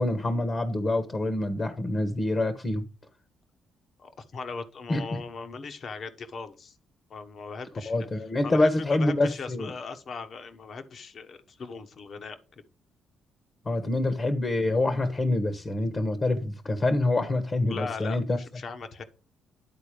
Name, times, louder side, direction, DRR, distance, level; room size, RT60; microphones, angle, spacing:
voice 1, 0.0-2.8 4.9-5.2 7.8-9.7 13.6-18.4, left 2 dB, 35° left, 1.1 m, -26 dB
voice 2, 4.0-6.7 7.1-7.9 8.4-12.4 17.7-19.0, left 4 dB, 50° left, 1.1 m, -38 dB
10.5 x 4.0 x 5.0 m
cardioid pair, 90°, 0 cm